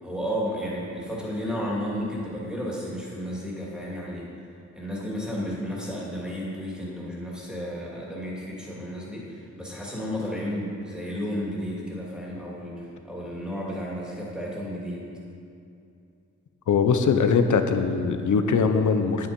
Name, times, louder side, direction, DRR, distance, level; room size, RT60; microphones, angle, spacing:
voice 1, 0.0-4.3 4.7-15.1, equal, 5° right, -5 dB, 2.6 m, -32 dB
voice 2, 16.7-19.3, left 5 dB, 90° left, 8 dB, 0.8 m, -21 dB
9.8 x 9.3 x 5.3 m, 2.5 s
wide cardioid pair, 125°, 29 cm